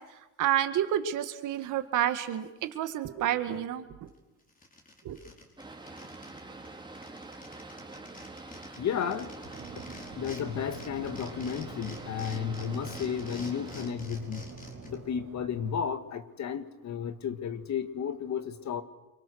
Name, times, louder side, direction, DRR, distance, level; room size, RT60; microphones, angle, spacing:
voice 1, 0.4-4.1 5.0-5.2, right 11 dB, 85° right, 9 dB, 1.9 m, -29 dB
sound 1, 4.1-4.2 4.5-6.4 6.6-6.7 6.9-10.4 10.7-14.9, left 2 dB, 30° left, 5.1 m, -47 dB
Boat Water vehicle, 5.6-13.9, right 2 dB, 15° right, 3.2 m, -45 dB
voice 2, 8.8-9.3 9.8-9.9 10.2-14.5 14.8-18.8, left 7 dB, 65° left, 9 dB, 2.1 m, -33 dB
sound 2, 9.4-15.8, right 4 dB, 70° right, 5.1 m, -46 dB
28.5 x 24.0 x 6.5 m, 1.1 s
cardioid pair, 90°, 30 cm